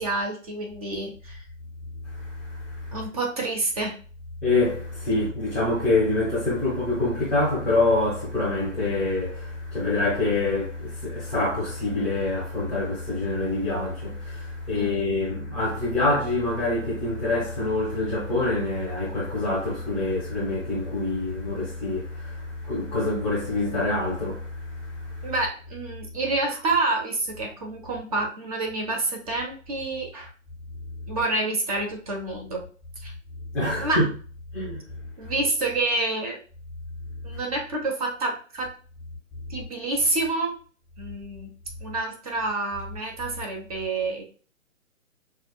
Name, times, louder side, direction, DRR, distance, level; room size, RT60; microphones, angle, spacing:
voice 1, 0.0-1.4 2.9-3.9 14.7-15.1 25.2-30.3 31.1-32.6 33.0-33.1 33.8-34.1 35.2-36.4 37.2-38.7 39.5-40.6 41.0-41.5 41.8-44.2, right 2 dB, 25° right, 0.8 m, -28 dB
voice 2, 2.0-3.0 4.4-25.3 33.5-34.0 34.5-34.8 35.2-35.3, left 2 dB, 5° left, 0.6 m, -26 dB
6.4 x 2.4 x 2.2 m
figure-of-eight pair, 135°, 41 cm